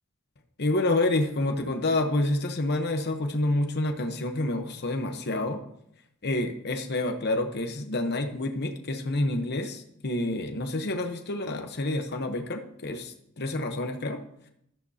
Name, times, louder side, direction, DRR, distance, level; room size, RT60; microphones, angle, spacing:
voice 1, 0.6-5.6 6.2-14.2, left 2 dB, 50° left, 5 dB, 1.0 m, -28 dB
13.5 x 12.0 x 2.8 m, 0.74 s
head